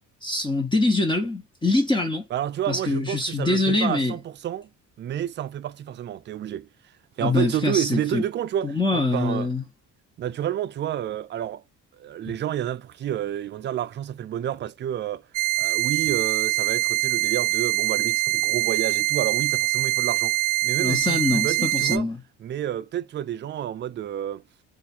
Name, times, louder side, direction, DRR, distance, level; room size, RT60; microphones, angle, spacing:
voice 1, 0.2-2.2 2.7-4.1 7.2-8.2 8.6-9.6 20.8-22.2, left 2 dB, 15° left, 0.9 m, -24 dB
voice 2, 2.3-4.7 5.0-6.7 7.2-9.5 10.2-11.6 11.9-15.3 15.6-22.1 22.4-24.4, right 11 dB, 35° right, 0.4 m, -30 dB
sound 1, 15.3-22.0, right 17 dB, 75° right, 0.6 m, -24 dB
3.5 x 2.5 x 4.2 m
cardioid pair, 115°, 32 cm